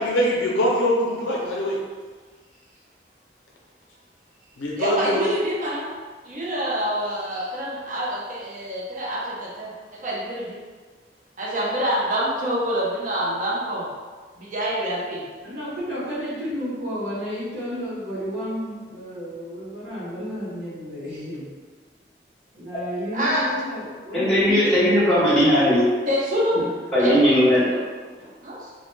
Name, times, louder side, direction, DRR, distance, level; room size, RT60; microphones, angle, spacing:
voice 1, 0.0-1.8 4.6-5.2, equal, 90° left, -3 dB, 0.4 m, -23 dB
voice 2, 4.8-5.9 6.2-9.7 10.0-10.6 11.4-13.9 14.4-15.2 23.1-23.5 26.1-26.6 27.0-27.8 28.4-28.7, equal, 45° right, -5 dB, 0.6 m, -26 dB
voice 3, 15.4-21.5 22.5-24.7 26.5-26.8 28.2-28.4, equal, 85° right, -8 dB, 0.8 m, -32 dB
voice 4, 24.1-25.8 26.9-27.6, equal, 5° left, -12 dB, 0.6 m, -18 dB
2.1 x 2.1 x 3.0 m, 1.5 s
head